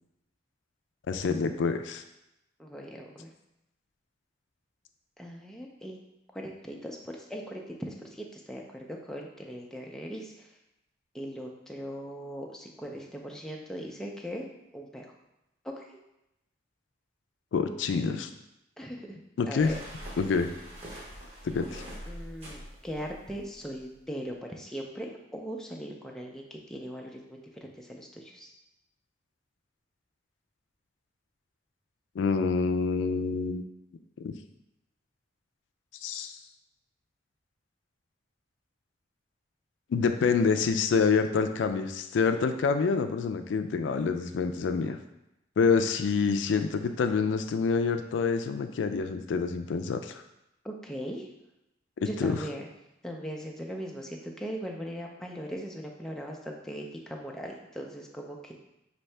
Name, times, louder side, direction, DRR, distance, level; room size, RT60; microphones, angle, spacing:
voice 1, 1.1-2.0 17.5-18.3 19.4-19.7 20.2-20.5 21.4-21.8 32.2-33.6 34.2-34.3 36.0-36.4 39.9-45.0 45.6-50.2 52.0-52.3, left 5 dB, 85° left, 8 dB, 0.3 m, -27 dB
voice 2, 2.6-3.3 5.2-6.0 6.3-10.5 11.1-14.5 14.7-15.1 15.6-16.0 18.8-19.2 19.5-19.8 22.1-28.5 50.6-51.3 52.0-52.7 53.0-58.5, equal, 5° left, 0 dB, 0.4 m, -39 dB
sound 1, 19.6-23.9, equal, 35° right, 0.9 m, -44 dB
5.3 x 2.7 x 3.3 m, 0.88 s
head